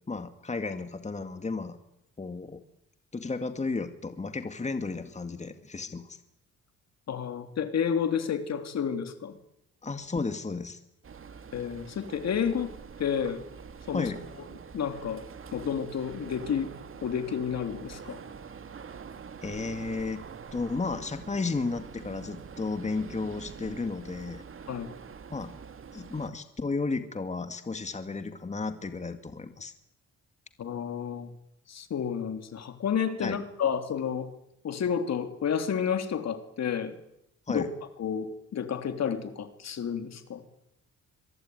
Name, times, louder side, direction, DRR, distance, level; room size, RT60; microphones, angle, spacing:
voice 1, 0.0-1.8 2.2-2.6 3.1-6.2 9.8-10.8 13.9-14.2 19.4-20.2 20.5-24.4 25.3-25.5 25.9-29.7 33.2-33.4 37.5-37.7, left 3 dB, 25° left, 8 dB, 2.2 m, -33 dB
voice 2, 7.1-9.4 11.5-12.7 13.0-13.4 13.9-14.1 14.7-15.2 15.5-16.7 17.0-18.2 24.7-24.9 30.6-31.3 31.7-34.3 34.6-37.0 37.5-37.7 38.0-40.4, left 7 dB, 60° left, 8 dB, 3.3 m, -30 dB
sound 1, 11.0-26.3, right 6 dB, 45° right, 2.6 m, -45 dB
24.5 x 23.5 x 9.5 m, 0.80 s
cardioid pair, 90°, 30 cm